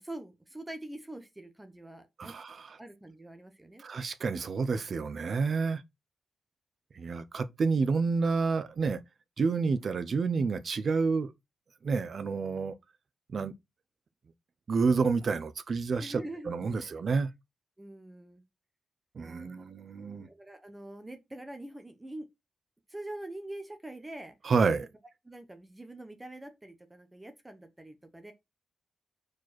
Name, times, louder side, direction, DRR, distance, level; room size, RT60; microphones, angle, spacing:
voice 1, 0.0-2.3 2.8-3.8 16.0-16.9 17.8-18.4 19.2-22.3 22.9-24.3 25.2-28.3, right 1 dB, 10° right, 0.9 m, -45 dB
voice 2, 2.2-2.8 3.8-5.8 6.9-9.0 9.4-11.3 11.8-12.7 13.3-13.5 14.7-16.2 16.5-17.3 19.2-20.3 24.4-24.9, right 4 dB, 45° right, 0.7 m, -29 dB
4.9 x 4.5 x 6.0 m
wide cardioid pair, 165°, 0 cm